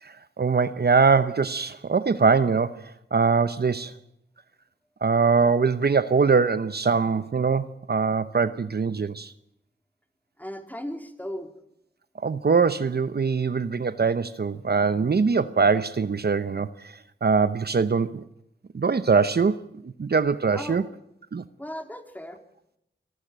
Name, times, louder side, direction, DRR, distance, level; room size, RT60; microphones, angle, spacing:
voice 1, 0.0-3.9 5.0-9.3 12.2-18.2 18.7-20.8 21.3-21.4, right 5 dB, 55° right, 0.9 m, -23 dB
voice 2, 10.4-11.5 20.5-20.9 21.6-22.4, equal, 10° left, 3.7 m, -36 dB
26.0 x 13.0 x 9.1 m
cardioid pair, 40°, 19 cm